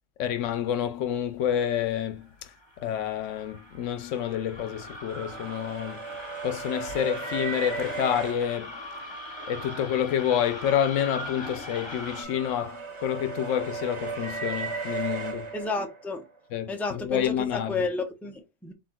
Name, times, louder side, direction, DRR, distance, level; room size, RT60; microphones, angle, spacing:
voice 1, 0.2-2.3 2.8-6.0 6.4-8.7 9.5-15.5 16.5-17.8, left 9 dB, 90° left, 1.0 m, -28 dB
sound 1, 2.2-12.2, left 1 dB, 25° left, 1.0 m, -41 dB
sound 2, 5.1-8.4 10.7-16.3, right 5 dB, 30° right, 0.7 m, -36 dB
voice 2, 15.5-16.2 16.7-18.7, left 3 dB, 5° left, 0.3 m, -31 dB
4.2 x 3.9 x 2.3 m
omnidirectional pair, 1.2 m